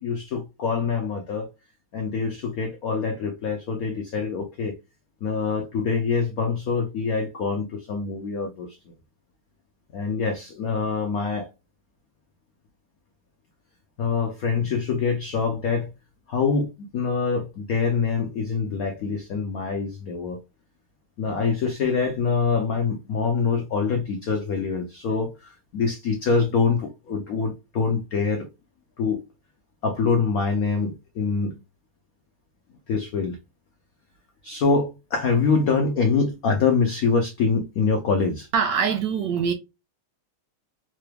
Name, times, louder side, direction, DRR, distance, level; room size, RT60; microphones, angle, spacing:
voice 1, 0.0-1.5 1.9-4.8 5.2-8.9 9.9-11.5 14.0-15.9 16.3-20.4 21.2-28.5 29.0-29.2 29.8-31.6 32.9-33.4 34.4-38.5, left 5 dB, 85° left, 0.7 m, -25 dB
voice 2, 38.5-39.5, right 6 dB, 75° right, 1.1 m, -23 dB
3.9 x 3.3 x 2.2 m
omnidirectional pair, 2.4 m